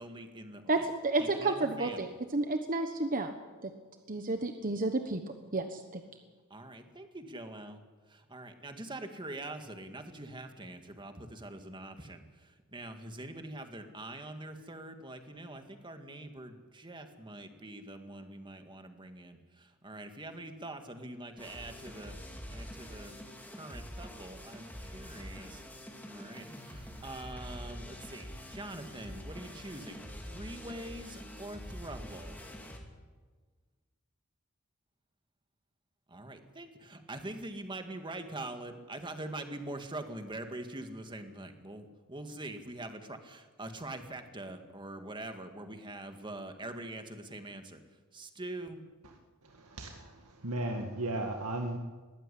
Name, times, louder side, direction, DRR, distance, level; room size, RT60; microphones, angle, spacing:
voice 1, 0.0-0.9 1.3-2.1 6.5-7.8 8.1-22.2 22.5-23.2 23.5-25.6 26.0-32.4 36.1-47.8 48.1-48.8, right 2 dB, 20° right, 6 dB, 2.0 m, -44 dB
voice 2, 0.7-2.1 2.3-3.3 3.6-3.7 4.1-5.2 5.5-6.0, right 2 dB, 40° right, 6 dB, 1.2 m, -31 dB
sound 1, 21.4-32.8, equal, 10° left, 3.1 m, -45 dB
voice 3, 49.4-51.8, right 1 dB, 85° right, 3 dB, 1.9 m, -36 dB
20.5 x 15.5 x 10.0 m, 1.3 s
head